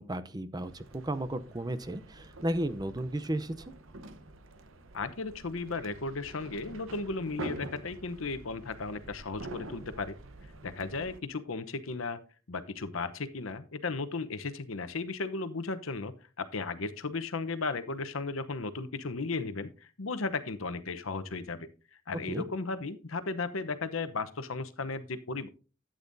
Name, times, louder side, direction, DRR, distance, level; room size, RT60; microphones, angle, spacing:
voice 1, 0.0-3.5 22.3-22.4, right 1 dB, 20° right, 13 dB, 0.6 m, -34 dB
sound 1, 0.6-11.2, right 2 dB, 75° right, 1.0 m, -46 dB
voice 2, 4.9-10.2 10.6-12.2 12.5-19.7 20.0-21.7 22.1-25.5, left 3 dB, 85° left, 11 dB, 0.9 m, -35 dB
12.0 x 8.9 x 2.6 m, 0.35 s
head